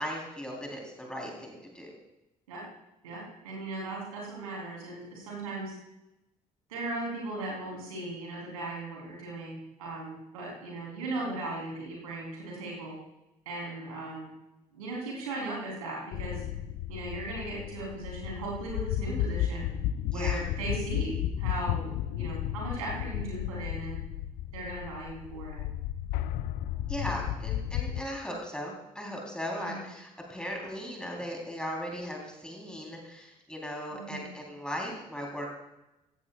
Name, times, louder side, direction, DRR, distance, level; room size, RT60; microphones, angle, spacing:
voice 1, 0.0-1.9 20.1-20.4 26.9-35.5, equal, 5° left, -1 dB, 3.5 m, -37 dB
voice 2, 3.0-5.7 6.7-13.0 13.5-14.3 14.7-16.4 16.9-19.7 20.1-24.0 24.5-25.6 29.6-29.9 33.9-34.2, right 2 dB, 75° right, -3 dB, 3.5 m, -37 dB
sound 1, 16.1-28.0, left 11 dB, 60° left, 0.5 m, -33 dB
16.5 x 14.5 x 2.4 m, 0.95 s
figure-of-eight pair, 45°, 18 cm